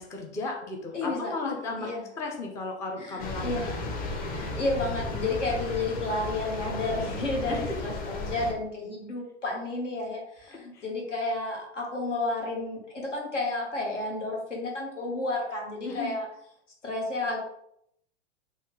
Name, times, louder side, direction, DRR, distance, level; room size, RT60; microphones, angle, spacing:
voice 1, 0.0-3.5 7.5-7.8 10.7-10.8 15.8-16.1, left 3 dB, 10° left, 1 dB, 0.3 m, -35 dB
voice 2, 0.9-1.3 1.8-2.0 3.0-3.8 4.2-16.3 16.8-17.4, left 2 dB, 80° left, -1 dB, 1.3 m, -31 dB
sound 1, 3.2-8.5, left 2 dB, 25° left, 0.7 m, -34 dB
4.1 x 2.3 x 3.1 m, 0.74 s
figure-of-eight pair, 95°, 36 cm